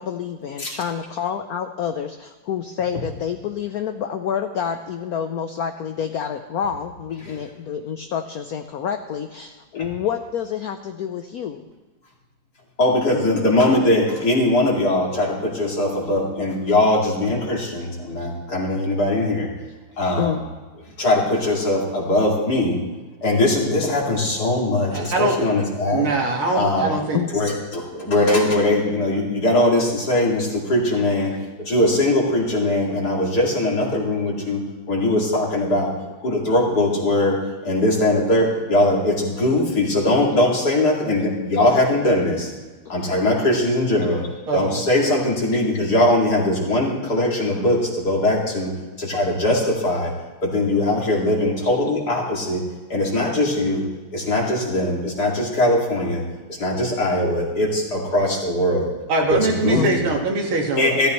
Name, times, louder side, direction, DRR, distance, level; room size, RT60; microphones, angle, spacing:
voice 1, 0.0-11.7 20.2-20.4 27.1-27.3 45.5-45.6 59.7-60.0, left 8 dB, 75° left, 7 dB, 0.8 m, -28 dB
voice 2, 12.8-19.5 20.0-20.4 21.0-22.8 23.2-26.1 26.5-26.9 27.3-35.9 36.2-42.5 42.9-48.7 49.0-50.1 50.4-53.8 54.1-58.9 59.3-60.1 60.8-61.1, left 1 dB, 50° left, -2 dB, 2.9 m, -21 dB
voice 3, 24.9-25.4 25.9-27.2 44.5-44.8 59.1-60.9, right 2 dB, 85° right, 1 dB, 2.6 m, -22 dB
15.0 x 14.0 x 3.1 m, 1.3 s
omnidirectional pair, 2.3 m